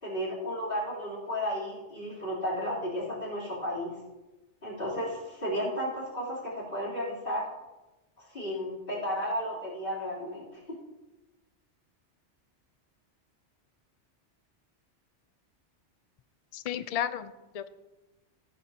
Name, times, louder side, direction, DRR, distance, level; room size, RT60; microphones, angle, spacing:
voice 1, 0.0-3.9 4.6-7.5 8.2-10.5, equal, 50° left, -6 dB, 3.6 m, -33 dB
voice 2, 16.5-17.7, left 10 dB, 75° left, 13 dB, 0.3 m, -33 dB
16.5 x 9.7 x 2.8 m, 1.1 s
omnidirectional pair, 1.2 m